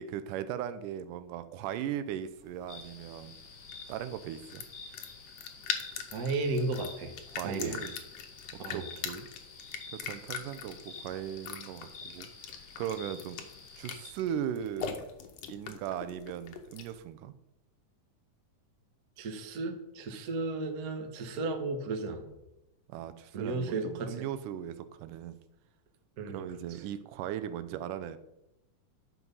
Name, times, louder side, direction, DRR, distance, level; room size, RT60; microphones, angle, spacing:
voice 1, 0.0-3.4 3.9-4.7 7.3-8.0 8.5-9.3 9.9-13.4 13.8-15.0 15.5-17.3 22.9-25.4 26.3-28.2, right 10 dB, 85° right, 12 dB, 2.2 m, -38 dB
sound 1, 2.2-17.0, left 7 dB, 65° left, 1.9 m, -43 dB
sound 2, 2.7-14.1, left 4 dB, 80° left, 0.7 m, -50 dB
voice 2, 6.1-7.1 7.4-7.8 8.6-8.8 19.2-22.3 23.3-24.2 26.2-26.8, right 3 dB, 60° right, 4 dB, 0.9 m, -34 dB
12.0 x 6.0 x 5.4 m, 0.92 s
omnidirectional pair, 3.7 m